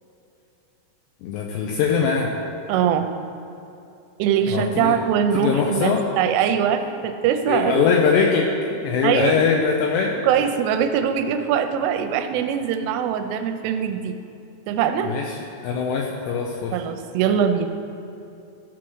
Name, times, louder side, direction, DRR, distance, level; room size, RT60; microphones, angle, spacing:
voice 1, 1.2-2.3 4.5-5.0 5.3-6.1 7.5-8.5 8.8-10.2 15.0-16.8, left 6 dB, 85° left, 0 dB, 2.5 m, -22 dB
voice 2, 2.7-3.1 4.2-8.0 9.0-9.3 10.2-14.2 14.7-15.1 16.7-17.7, right 8 dB, 90° right, 7 dB, 3.2 m, -22 dB
14.5 x 6.1 x 4.7 m, 2.8 s
omnidirectional pair, 5.7 m